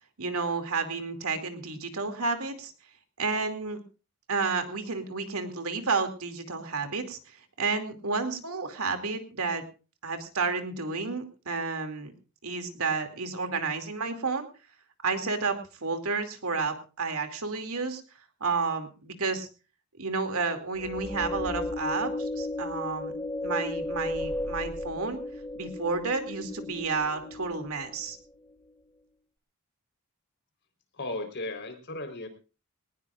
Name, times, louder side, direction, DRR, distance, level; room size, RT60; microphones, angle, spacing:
voice 1, 0.2-2.7 3.2-3.8 4.3-9.6 10.0-12.1 12.4-14.5 15.0-18.0 18.4-19.5 20.0-23.1 23.4-25.2 25.6-28.2, right 4 dB, 75° right, 7 dB, 2.6 m, -31 dB
sound 1, 20.8-28.1, left 2 dB, 10° left, 1.1 m, -35 dB
voice 2, 30.9-32.3, left 2 dB, 50° left, 5 dB, 4.1 m, -35 dB
21.0 x 19.0 x 2.5 m, 0.34 s
head